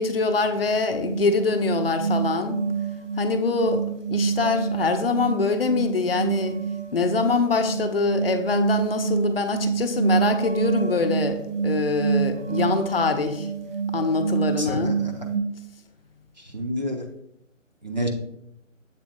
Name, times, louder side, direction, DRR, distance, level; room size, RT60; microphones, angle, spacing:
voice 1, 0.0-2.6 3.2-6.6 6.9-13.5 13.9-14.9, left 4 dB, 45° left, 7 dB, 0.7 m, -24 dB
sound 1, 0.8-15.4, right 6 dB, 65° right, 0.9 m, -27 dB
voice 2, 14.6-15.3 16.5-17.1 17.8-18.1, equal, 35° right, 2 dB, 0.6 m, -28 dB
7.2 x 4.0 x 3.6 m, 0.77 s
figure-of-eight pair, 165°, 39 cm